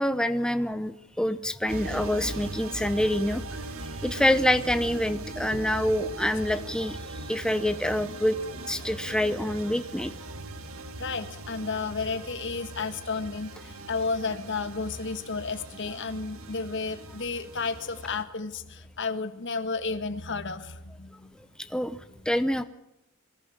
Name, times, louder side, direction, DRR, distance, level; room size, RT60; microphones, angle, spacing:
voice 1, 0.0-3.6 4.0-7.0 7.3-8.4 8.7-10.1 21.7-22.0 22.3-22.6, left 1 dB, 5° left, 10 dB, 0.7 m, -26 dB
sound 1, 1.7-18.2, right 2 dB, 75° right, 1.9 m, -40 dB
voice 2, 11.0-21.3, left 4 dB, 60° left, 10 dB, 1.6 m, -32 dB
23.5 x 15.0 x 8.7 m, 0.93 s
head